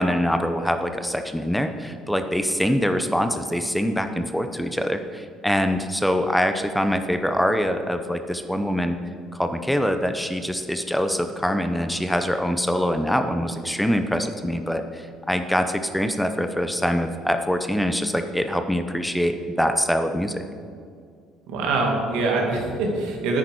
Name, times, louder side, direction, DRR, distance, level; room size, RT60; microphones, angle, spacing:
voice 1, 0.0-9.0 9.3-20.4, equal, 5° left, 7 dB, 0.8 m, -24 dB
voice 2, 21.5-23.4, right 3 dB, 80° right, 1 dB, 2.1 m, -24 dB
9.8 x 9.4 x 4.7 m, 2.2 s
supercardioid pair, 80°, 0 cm